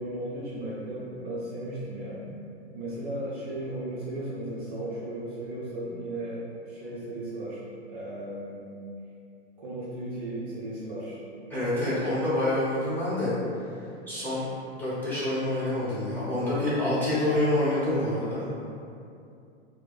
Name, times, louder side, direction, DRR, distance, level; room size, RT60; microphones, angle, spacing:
voice 1, 0.0-2.3 2.7-8.6 9.6-11.2, right 1 dB, 35° right, -8 dB, 0.6 m, -35 dB
voice 2, 11.5-13.3 14.1-14.4 14.8-18.4, left 1 dB, 5° left, -12 dB, 0.8 m, -27 dB
2.6 x 2.1 x 3.8 m, 2.5 s
figure-of-eight pair, 105°, 35 cm